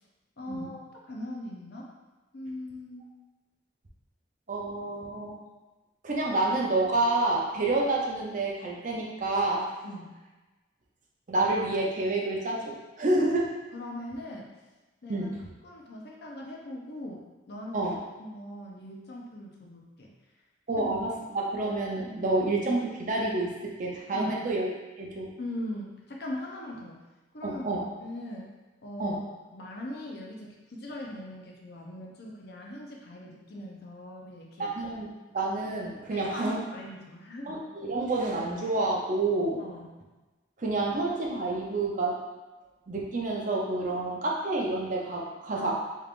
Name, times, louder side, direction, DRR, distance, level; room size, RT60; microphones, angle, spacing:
voice 1, 0.4-1.9 2.3-3.1 9.8-10.1 13.7-14.5 15.0-15.3 15.6-17.8 18.2-20.1 20.8-20.9 24.1-24.3 25.4-27.0 27.3-28.5 28.8-29.2 29.5-34.7 36.1-37.5 39.6-39.9 45.6-45.7, left 1 dB, 60° left, -2 dB, 0.6 m, -40 dB
voice 2, 4.5-5.4 6.0-9.7 11.3-13.5 15.1-15.4 17.7-18.0 20.7-24.7 25.0-25.3 27.4-27.8 29.0-29.2 34.6-36.6 37.5-39.6 40.6-42.2 42.9-45.7, right 2 dB, 45° right, -2 dB, 0.6 m, -28 dB
3.5 x 3.2 x 2.4 m, 1.2 s
head